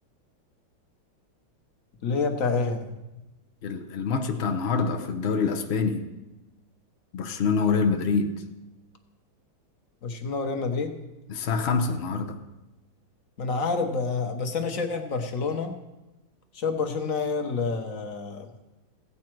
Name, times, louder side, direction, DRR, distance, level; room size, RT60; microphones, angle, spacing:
voice 1, 2.0-2.9 10.0-11.1 13.4-15.8 16.5-18.5, left 4 dB, 50° left, 1.2 m, -28 dB
voice 2, 3.6-6.1 7.1-8.4 11.3-12.4, left 5 dB, 85° left, 0.5 m, -26 dB
16.0 x 8.5 x 4.5 m
omnidirectional pair, 2.3 m